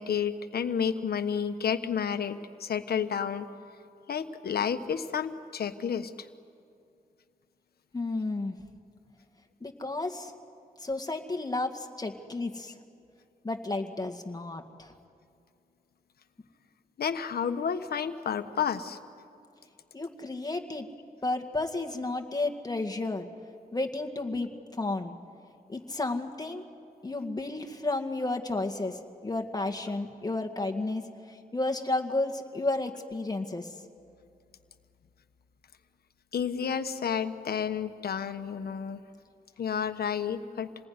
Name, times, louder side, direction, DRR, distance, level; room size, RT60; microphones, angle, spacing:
voice 1, 0.0-3.5 4.1-6.1 17.0-19.0 36.3-39.0 39.6-40.7, left 7 dB, 90° left, 8 dB, 1.2 m, -31 dB
voice 2, 7.9-8.6 9.6-10.3 10.8-12.8 13.4-14.9 19.9-20.9 21.2-23.3 23.7-25.2 25.7-26.6 27.0-33.7, left 2 dB, 25° left, 5 dB, 2.1 m, -32 dB
28.0 x 20.0 x 9.7 m, 2.4 s
wide cardioid pair, 90°, 16 cm